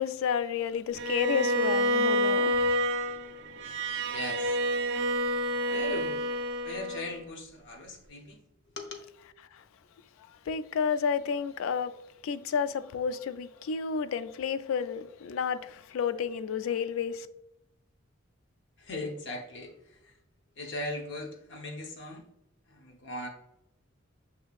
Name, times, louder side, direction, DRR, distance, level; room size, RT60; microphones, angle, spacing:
voice 1, 0.0-2.8 9.5-9.6 10.2-11.9 12.2-17.3, left 7 dB, 75° left, 0.3 m, -31 dB
Bowed string instrument, 0.9-7.2, equal, 55° right, 0.4 m, -28 dB
voice 2, 4.1-4.6 5.7-6.2 6.6-8.4 8.8-9.0 15.3-15.4 18.8-20.2 20.6-22.3 22.7-23.3, left 1 dB, 60° left, 0.7 m, -39 dB
6.3 x 2.8 x 2.4 m
head